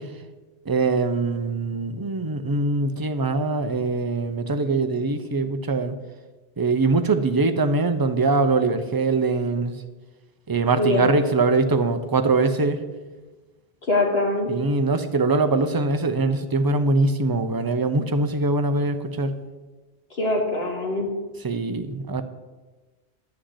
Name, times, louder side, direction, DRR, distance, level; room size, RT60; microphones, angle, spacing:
voice 1, 0.6-6.0 6.6-9.8 10.5-12.8 14.5-19.4 21.4-22.2, right 3 dB, 25° right, 8 dB, 0.7 m, -22 dB
voice 2, 10.8-11.2 13.8-14.5 20.1-21.1, left 2 dB, 70° left, -2 dB, 2.3 m, -23 dB
11.5 x 6.4 x 8.0 m, 1.2 s
omnidirectional pair, 1.1 m